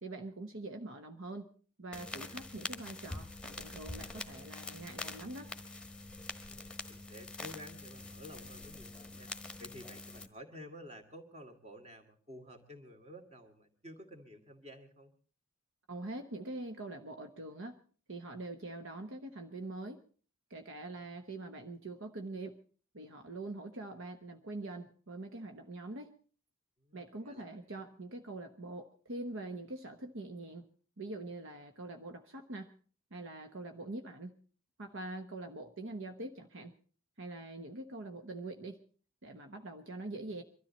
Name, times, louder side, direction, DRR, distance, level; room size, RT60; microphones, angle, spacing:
voice 1, 0.0-1.5 1.8-5.5 15.9-17.8 18.1-20.0 20.5-22.6 22.9-26.2 26.9-30.7 31.0-32.7 33.1-34.3 34.8-36.7 37.2-38.8 39.2-40.4, right 2 dB, 65° right, 6 dB, 1.0 m, -44 dB
sound 1, 1.9-10.3, left 2 dB, 5° left, 1.3 m, -45 dB
voice 2, 6.5-9.3 9.6-15.1 26.8-27.6, equal, 30° right, 5 dB, 2.3 m, -52 dB
23.0 x 13.0 x 4.2 m, 0.41 s
head